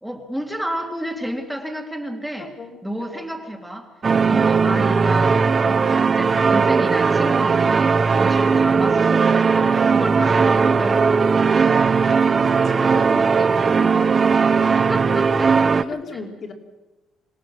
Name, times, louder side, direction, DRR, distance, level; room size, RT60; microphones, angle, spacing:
voice 1, 0.0-2.5 2.8-3.9 4.3-11.5 14.9-15.6 15.9-16.0, right 1 dB, 5° right, 3 dB, 2.1 m, -31 dB
voice 2, 2.4-3.4 9.6-9.7 12.4-14.2 15.8-16.5, left 4 dB, 40° left, 3 dB, 2.7 m, -37 dB
sound 1, 4.0-15.8, right 5 dB, 30° right, 0.6 m, -18 dB
25.5 x 18.5 x 6.2 m, 1.1 s
cardioid pair, 140°, 0 cm